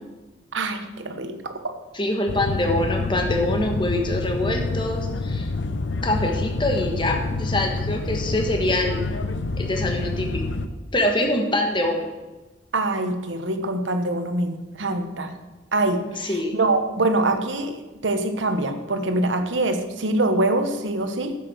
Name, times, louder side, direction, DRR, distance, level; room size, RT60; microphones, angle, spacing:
voice 1, 0.5-1.5 12.7-15.3 15.7-21.4, right 2 dB, 90° right, 8 dB, 1.1 m, -24 dB
voice 2, 1.9-5.5 6.0-9.0 9.6-10.4 10.9-12.1 14.9-15.0 16.2-16.6, left 1 dB, 25° left, 3 dB, 1.4 m, -24 dB
sound 1, 2.3-10.7, left 3 dB, 80° left, 0.7 m, -27 dB
10.0 x 7.6 x 6.3 m, 1.1 s
head